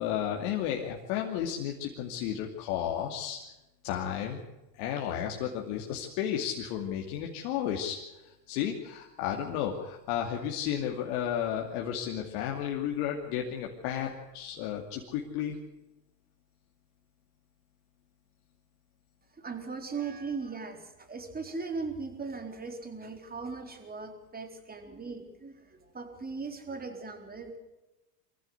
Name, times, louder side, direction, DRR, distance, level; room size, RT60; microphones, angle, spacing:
voice 1, 0.0-3.4 3.8-4.4 4.7-15.6, left 9 dB, 65° left, 0 dB, 2.8 m, -33 dB
voice 2, 19.3-27.6, right 4 dB, 20° right, 5 dB, 4.1 m, -39 dB
24.0 x 15.0 x 8.2 m, 0.98 s
hypercardioid pair, 100°, 48 cm